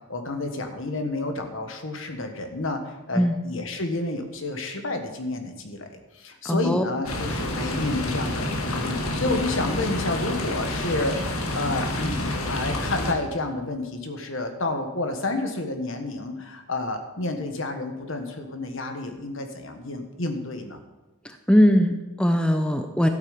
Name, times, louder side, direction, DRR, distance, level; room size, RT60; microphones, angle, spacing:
voice 1, 0.1-11.1 11.5-20.8, left 2 dB, 65° left, 6 dB, 1.5 m, -30 dB
voice 2, 6.4-6.8 21.5-23.1, equal, 5° left, 6 dB, 0.6 m, -20 dB
sound 1, 7.0-13.1, left 1 dB, 90° left, 1.7 m, -28 dB
12.5 x 8.7 x 5.2 m, 1.1 s
head